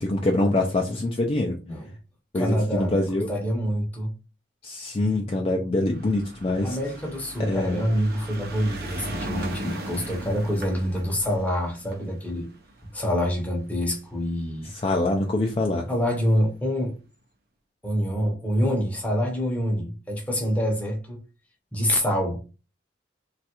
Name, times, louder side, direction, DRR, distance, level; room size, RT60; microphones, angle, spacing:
voice 1, 0.0-1.6 2.3-3.3 4.6-6.8 7.5-7.8 14.7-15.9, left 2 dB, 30° left, 0.3 m, -24 dB
voice 2, 2.3-4.1 6.6-12.5 12.9-14.7 15.9-16.9 17.8-21.2 21.7-22.4, equal, 10° left, 0.7 m, -26 dB
sound 1, 5.8-14.3 15.2-15.3 15.5-15.6 15.8-15.9, right 1 dB, 55° right, 0.6 m, -38 dB
3.1 x 2.3 x 2.9 m
head